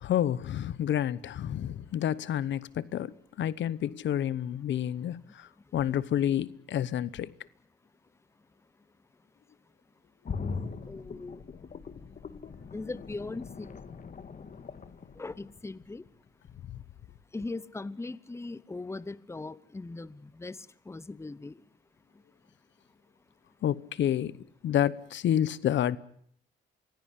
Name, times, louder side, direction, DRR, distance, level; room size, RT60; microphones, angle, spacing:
voice 1, 0.0-7.3 16.7-16.8 23.6-24.3 24.6-26.0, left 10 dB, 70° left, 1.0 m, -29 dB
sound 1, 10.2-16.1 16.4-16.5, left 5 dB, 40° left, 1.8 m, -41 dB
voice 2, 10.9-11.4 12.7-13.8 15.2-16.0 17.3-21.6, left 3 dB, 15° left, 0.9 m, -39 dB
23.5 x 16.5 x 9.9 m
cardioid pair, 90°, 20 cm